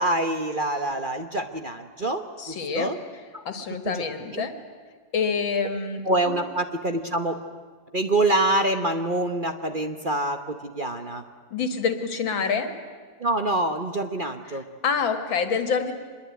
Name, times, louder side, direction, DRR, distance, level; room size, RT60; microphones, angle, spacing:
voice 1, 0.0-3.0 3.3-3.4 3.8-4.0 4.3-4.5 6.0-7.4 7.9-11.2 13.2-14.6, right 1 dB, 35° right, 7 dB, 1.0 m, -26 dB
voice 2, 2.4-2.9 3.5-4.6 5.1-6.0 6.3-6.4 11.5-12.7 14.5-14.6 14.8-15.9, left 5 dB, 90° left, 8 dB, 2.7 m, -26 dB
25.5 x 21.5 x 9.3 m, 1.5 s
omnidirectional pair, 2.1 m